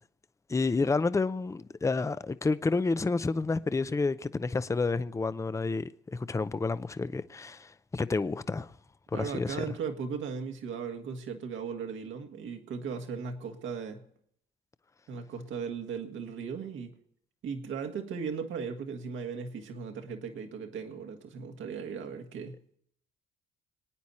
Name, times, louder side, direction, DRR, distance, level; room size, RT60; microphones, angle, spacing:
voice 1, 0.5-8.7 9.1-9.6, left 3 dB, 15° left, 0.5 m, -30 dB
voice 2, 9.1-14.0 15.1-16.9 17.4-22.8, right 6 dB, 75° right, 1.9 m, -37 dB
26.0 x 9.4 x 4.3 m
cardioid pair, 90°, 20 cm